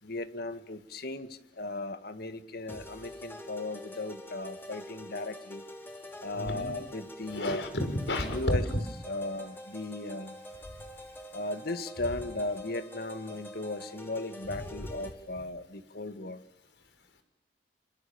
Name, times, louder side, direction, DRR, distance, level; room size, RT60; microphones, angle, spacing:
voice 1, 0.0-5.6 6.2-7.6 8.2-8.6 9.1-10.4 11.3-16.4, left 2 dB, 60° left, 10 dB, 2.1 m, -36 dB
sound 1, 2.7-15.1, left 1 dB, 15° left, 4.7 m, -46 dB
voice 2, 6.3-6.7 7.3-8.4 14.5-14.9, left 1 dB, 75° left, 8 dB, 5.6 m, -33 dB
30.0 x 26.5 x 7.2 m, 0.76 s
head